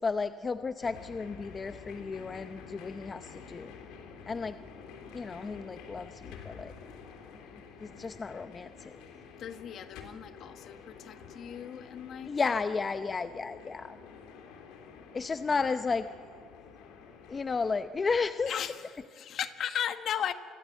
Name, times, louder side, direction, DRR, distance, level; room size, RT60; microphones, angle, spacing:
voice 1, 0.0-3.8 4.3-4.6 5.1-6.7 7.8-8.7 12.3-14.0 15.1-16.1 17.3-18.5, left 4 dB, 25° left, 10 dB, 0.7 m, -33 dB
sound 1, 0.8-17.8, left 6 dB, 85° left, 3.5 m, -49 dB
voice 2, 9.4-12.6 18.4-20.3, left 9 dB, 55° left, 9 dB, 1.5 m, -36 dB
28.0 x 22.0 x 8.3 m, 2.1 s
cardioid pair, 110°, 0 cm